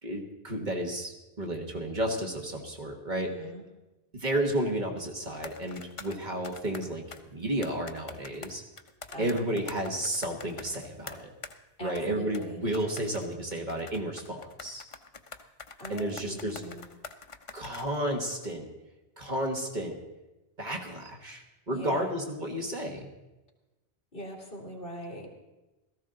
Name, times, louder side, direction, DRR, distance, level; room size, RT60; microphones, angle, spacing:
voice 1, 0.0-3.4 4.2-7.0 7.3-8.6 9.2-11.3 11.8-14.8 15.9-16.6 17.5-18.7 19.2-20.0 20.6-23.1, right 1 dB, 45° right, 2 dB, 1.6 m, -32 dB
voice 2, 3.1-3.6 9.1-9.6 11.8-12.6 15.8-16.9 21.7-22.2 24.1-25.3, equal, 55° left, 1 dB, 2.6 m, -41 dB
sound 1, 5.3-7.2 7.6-11.6 11.9-12.1 12.3-12.5 12.7-18.0 18.4-18.5, left 4 dB, 35° left, 0.6 m, -45 dB
17.0 x 14.0 x 3.8 m, 1.0 s
omnidirectional pair, 1.1 m